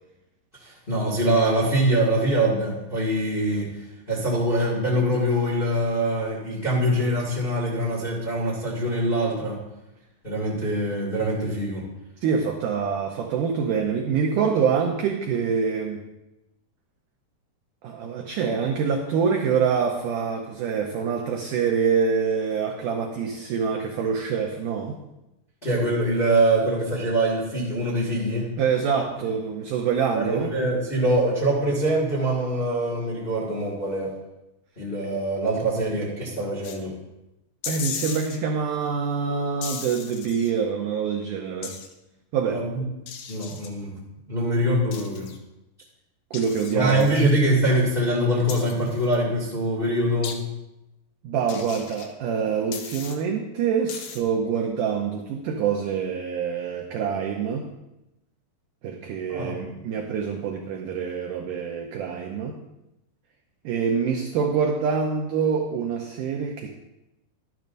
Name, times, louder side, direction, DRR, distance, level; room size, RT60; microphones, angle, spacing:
voice 1, 0.6-9.6 10.2-11.8 25.6-28.5 30.1-34.1 34.8-36.9 42.5-42.8 43.3-43.9 44.3-45.3 46.7-50.3 59.3-59.6, right 1 dB, 30° left, -5 dB, 0.9 m, -24 dB
voice 2, 12.2-16.0 17.8-25.0 28.6-30.5 37.7-41.8 42.3-42.6 46.3-47.2 51.2-57.7 58.8-62.6 63.6-66.7, right 6 dB, 90° right, 2 dB, 1.8 m, -25 dB
sound 1, 36.6-36.8 37.6-38.4 39.6-40.5 41.6-41.9 43.1-43.7 44.9-45.4 46.3-47.3 48.5-49.2 50.2-50.4 51.5-52.1 52.7-53.2 53.9-54.2, left 7 dB, 75° left, 1.9 m, -36 dB
12.0 x 12.0 x 2.6 m, 0.94 s
omnidirectional pair, 4.7 m